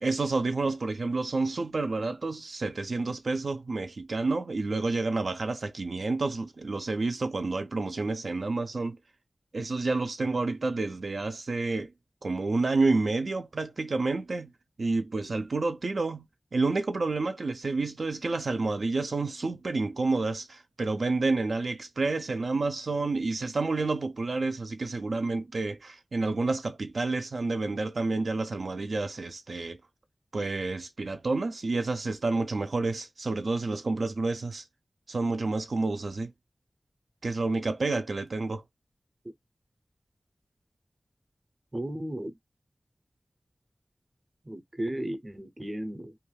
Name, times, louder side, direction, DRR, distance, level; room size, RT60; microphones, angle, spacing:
voice 1, 0.0-9.0 9.5-11.9 12.2-14.5 14.8-16.2 16.5-29.8 30.3-34.6 35.1-36.3 37.2-38.6, right 3 dB, 75° right, 0.4 m, -29 dB
voice 2, 41.7-42.3 44.4-46.2, right 1 dB, 25° right, 0.6 m, -34 dB
2.4 x 2.2 x 3.1 m
wide cardioid pair, 90°, 0 cm